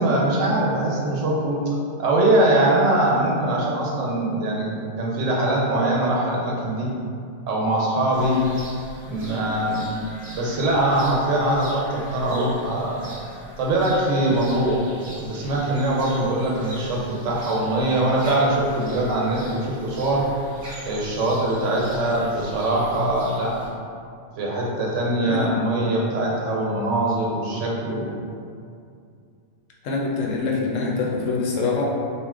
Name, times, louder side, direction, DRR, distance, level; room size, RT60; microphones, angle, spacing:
voice 1, 0.0-1.6 2.0-6.9 7.5-8.4 9.1-9.8 10.3-13.1 13.6-14.8 15.2-20.2 20.8-23.6 24.4-28.1, right 1 dB, 80° right, -3 dB, 1.0 m, -22 dB
sound 1, 8.1-23.7, equal, 50° right, 0.8 m, -42 dB
voice 2, 29.8-31.8, left 4 dB, 85° left, -3 dB, 0.9 m, -25 dB
2.6 x 2.1 x 3.6 m, 2.4 s
omnidirectional pair, 1.3 m